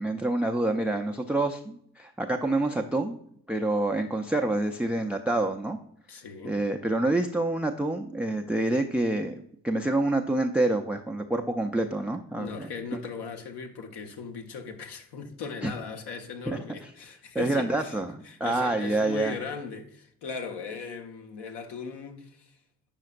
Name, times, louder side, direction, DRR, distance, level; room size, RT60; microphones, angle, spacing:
voice 1, 0.0-3.2 3.5-5.8 6.4-9.3 9.6-12.7 15.6-15.7 16.5-16.6 17.3-19.4, right 2 dB, 5° right, 0.4 m, -27 dB
voice 2, 6.1-6.6 12.3-18.0 18.2-22.5, left 5 dB, 55° left, 1.1 m, -38 dB
8.6 x 5.7 x 2.4 m
figure-of-eight pair, 45°, 47 cm